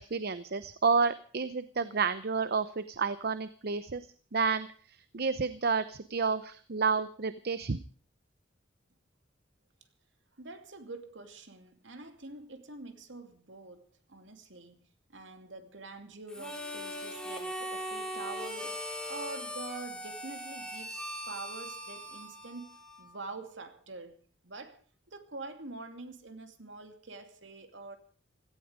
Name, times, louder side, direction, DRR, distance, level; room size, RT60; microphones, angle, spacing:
voice 1, 0.1-4.0 4.3-4.7 5.1-7.8, right 5 dB, 55° right, 0.7 m, -30 dB
voice 2, 10.3-14.8 15.1-24.1 24.4-24.8 25.1-28.0, right 3 dB, 75° right, 2.6 m, -46 dB
Harmonica, 16.3-23.2, equal, 5° left, 3.0 m, -40 dB
17.0 x 15.5 x 5.1 m
head